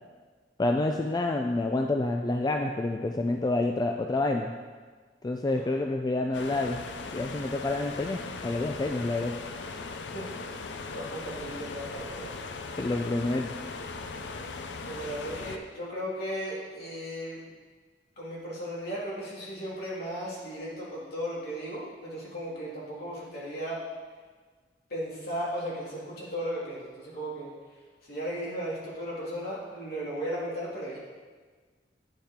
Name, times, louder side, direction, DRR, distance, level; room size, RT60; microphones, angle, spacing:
voice 1, 0.6-4.5 5.2-6.8 7.1-9.4 12.8-13.5, left 2 dB, 25° left, 3 dB, 0.4 m, -28 dB
voice 2, 5.5-5.8 10.1-10.2 10.6-12.3 14.9-17.4 18.2-23.8 24.9-31.0, equal, 60° left, -6 dB, 2.6 m, -36 dB
sound 1, 6.3-15.6, left 4 dB, 90° left, 0.6 m, -39 dB
9.3 x 7.2 x 3.7 m, 1.5 s
head